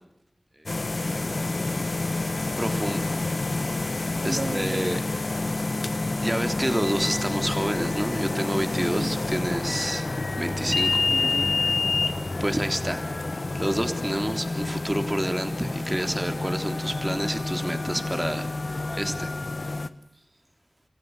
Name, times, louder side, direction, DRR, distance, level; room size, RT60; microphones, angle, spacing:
sound 1, 0.7-19.9, left 2 dB, 60° left, 1.1 m, -28 dB
voice 1, 1.0-1.5 2.6-3.3 4.2-5.3 6.2-11.1 12.4-19.3, right 1 dB, 15° right, 7 dB, 3.3 m, -29 dB
voice 2, 4.2-4.8 8.9-9.1 11.1-11.8 20.1-20.4, right 2 dB, 65° right, 1 dB, 2.6 m, -36 dB
28.0 x 15.5 x 7.8 m, 0.79 s
wide cardioid pair, 40°, 0 cm